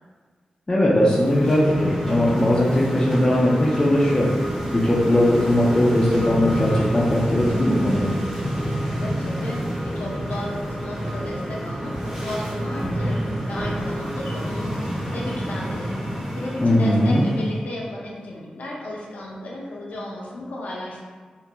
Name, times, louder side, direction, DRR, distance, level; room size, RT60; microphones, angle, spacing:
voice 1, 0.7-4.3 4.7-8.1 16.6-17.3, left 1 dB, 30° left, -5 dB, 0.4 m, -19 dB
sound 1, 0.9-17.6, equal, 15° right, 0.9 m, -28 dB
voice 2, 8.9-9.6 9.9-15.9 16.3-21.0, left 1 dB, 85° left, -3 dB, 0.5 m, -34 dB
2.5 x 2.2 x 2.9 m, 1.5 s
cardioid pair, 70°, 3 cm